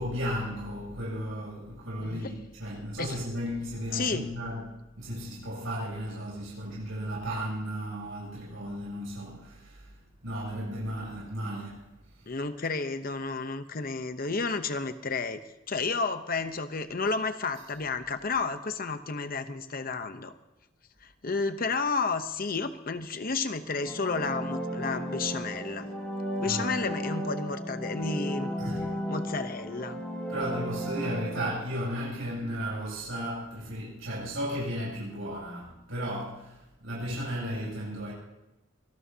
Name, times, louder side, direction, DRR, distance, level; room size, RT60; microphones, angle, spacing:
voice 1, 0.0-9.9 10.2-11.9 26.4-26.6 28.6-28.9 30.3-38.1, equal, 80° right, -6 dB, 8.0 m, -35 dB
voice 2, 3.9-4.3 12.3-15.4 15.7-20.3 21.0-25.9 26.4-28.5 29.1-30.0, left 4 dB, 45° left, 9 dB, 0.9 m, -31 dB
sound 1, 23.6-31.5, equal, 5° left, 5.5 m, -34 dB
25.0 x 18.5 x 2.9 m, 0.99 s
head